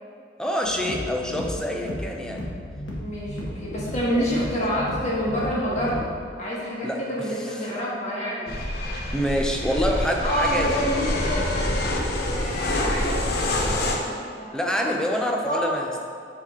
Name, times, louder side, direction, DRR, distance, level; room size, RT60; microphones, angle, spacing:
voice 1, 0.4-2.4 4.2-4.3 6.8-7.0 9.1-10.8 14.5-15.9, equal, 5° left, 1 dB, 0.5 m, -26 dB
sound 1, 0.6-6.2, left 1 dB, 80° left, 1.1 m, -35 dB
voice 2, 3.0-6.1 6.4-8.5 10.2-15.1 15.4-15.7, equal, 40° left, -6 dB, 1.5 m, -28 dB
sound 2, 8.5-14.0, left 1 dB, 60° left, 0.7 m, -26 dB
7.3 x 3.5 x 3.6 m, 2.3 s
head